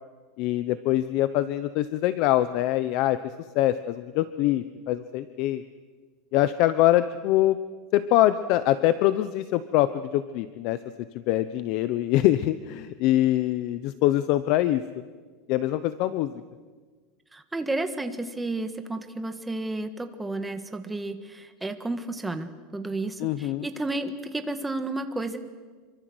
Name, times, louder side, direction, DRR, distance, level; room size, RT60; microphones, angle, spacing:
voice 1, 0.4-5.6 6.3-7.6 7.9-10.8 11.1-14.8 15.5-16.4 23.2-23.7, left 14 dB, 45° left, 13 dB, 0.9 m, -24 dB
voice 2, 17.3-25.4, right 2 dB, 5° right, 8 dB, 1.6 m, -32 dB
27.5 x 24.5 x 8.0 m, 1.5 s
supercardioid pair, 165°, 0 cm